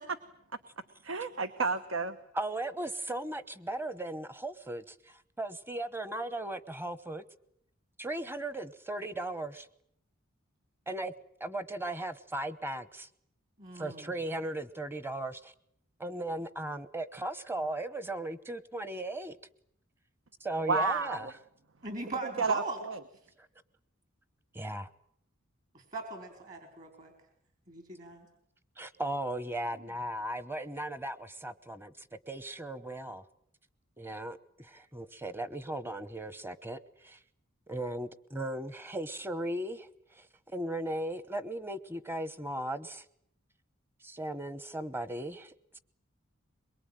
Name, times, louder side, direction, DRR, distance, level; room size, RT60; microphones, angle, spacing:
voice 1, 1.0-2.2 20.7-21.3 22.4-23.0, right 4 dB, 75° right, 11 dB, 1.1 m, -31 dB
voice 2, 2.3-7.2 8.0-9.7 10.9-11.1 11.4-13.1 13.7-15.5 16.0-19.4 20.4-21.3 24.5-24.9 28.8-33.2 34.0-37.2 37.7-40.3 40.5-43.0 44.0-45.8, right 1 dB, 10° right, 15 dB, 1.0 m, -37 dB
voice 3, 13.6-14.1 21.8-22.8 25.7-27.1 27.7-28.3 29.8-29.9, right 3 dB, 40° right, 5 dB, 4.0 m, -39 dB
23.0 x 22.5 x 9.1 m, 0.71 s
head